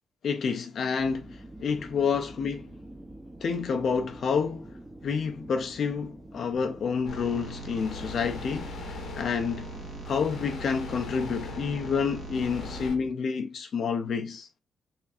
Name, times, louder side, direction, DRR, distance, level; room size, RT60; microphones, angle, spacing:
voice 1, 0.2-2.6 3.4-4.7 5.0-9.7 10.1-14.5, left 6 dB, 65° left, 0.4 m, -29 dB
sound 1, 1.0-13.1, right 1 dB, 20° right, 0.7 m, -46 dB
sound 2, 7.0-13.0, left 8 dB, 80° left, 0.9 m, -43 dB
sound 3, 7.1-12.9, right 4 dB, 50° right, 1.4 m, -41 dB
4.8 x 2.5 x 2.4 m
cardioid pair, 80°, 0 cm